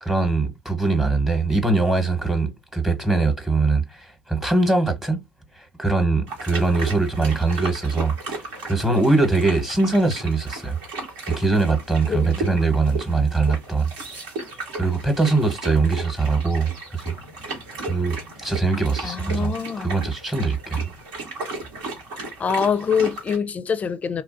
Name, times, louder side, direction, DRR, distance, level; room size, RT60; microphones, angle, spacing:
voice 1, 0.0-5.2 5.6-8.4 8.6-10.8 11.3-13.9 14.7-17.2 17.8-18.2 18.4-20.9, right 3 dB, 10° right, 1.0 m, -22 dB
sound 1, 6.3-23.4, right 3 dB, 75° right, 1.1 m, -35 dB
voice 2, 12.1-12.6 19.0-20.0 22.4-24.2, left 6 dB, 35° left, 0.4 m, -25 dB
3.1 x 2.4 x 2.5 m
hypercardioid pair, 60°, 4 cm